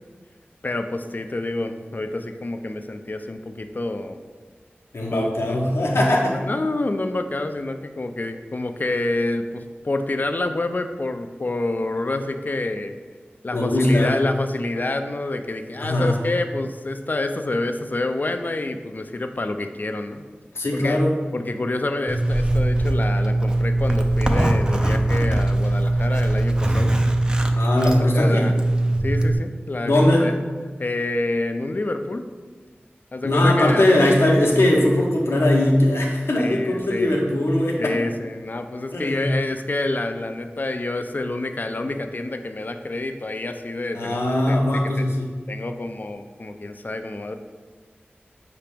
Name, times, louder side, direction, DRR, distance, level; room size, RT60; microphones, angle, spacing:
voice 1, 0.6-4.2 5.1-5.6 6.3-12.9 13.4-20.2 20.7-21.0 21.3-27.0 28.1-28.5 29.0-30.3 30.8-32.2 33.1-33.8 36.4-37.1 37.8-44.8 45.5-47.4, left 2 dB, 45° left, 7 dB, 0.3 m, -28 dB
voice 2, 4.9-6.4 13.5-14.2 15.8-16.2 20.5-21.2 27.6-28.5 29.8-30.3 33.2-37.9 38.9-39.3 43.9-45.3, left 1 dB, 85° left, -1 dB, 0.7 m, -20 dB
Zipper (clothing), 22.1-29.4, right 1 dB, 20° right, 0.4 m, -21 dB
4.9 x 2.9 x 3.4 m, 1.5 s
wide cardioid pair, 45°, 4 cm